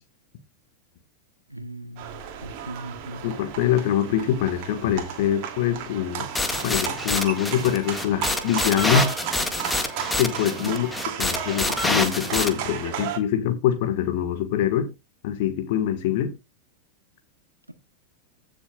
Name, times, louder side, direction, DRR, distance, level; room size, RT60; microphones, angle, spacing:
voice 1, 1.5-3.2 10.6-10.8, right 1 dB, 85° right, 1.2 m, -38 dB
sound 1, 2.0-13.2, right 9 dB, 45° right, 2.7 m, -34 dB
voice 2, 3.2-6.3 6.6-9.1 10.2-10.9 11.2-14.9 15.2-16.3, left 10 dB, 50° left, 1.6 m, -24 dB
sound 2, 6.4-12.5, left 2 dB, 5° left, 1.9 m, -27 dB
15.5 x 7.3 x 2.4 m
figure-of-eight pair, 90°, 0 cm